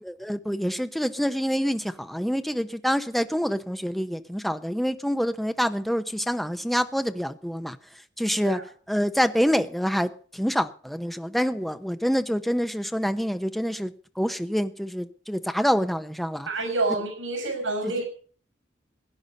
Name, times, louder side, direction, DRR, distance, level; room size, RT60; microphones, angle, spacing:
voice 1, 0.0-7.8 8.2-8.6 8.9-16.5 17.8-17.9, equal, ahead, 0.8 m, -26 dB
voice 2, 16.5-18.0, right 2 dB, 85° right, 5.3 m, -28 dB
17.0 x 9.8 x 5.4 m
head